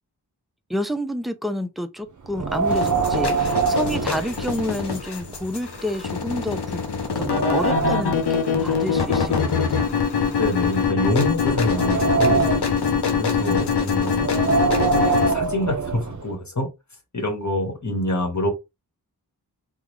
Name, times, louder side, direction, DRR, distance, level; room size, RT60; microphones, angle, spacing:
voice 1, 0.7-6.8 7.2-10.0 10.2-10.4 13.4-13.7, equal, ahead, 0.4 m, -29 dB
Wind, 2.3-4.9 5.3-5.4 6.1-6.2 6.7-8.3 9.1-10.7 11.2-12.8 14.1-16.2, right 4 dB, 50° right, 0.6 m, -24 dB
sound 1, 2.7-15.3, left 6 dB, 80° left, 0.7 m, -24 dB
voice 2, 10.4-12.5 13.2-14.1 15.1-16.7 17.1-18.5, left 1 dB, 45° left, 1.2 m, -26 dB
3.6 x 2.0 x 3.1 m
wide cardioid pair, 45°, 39 cm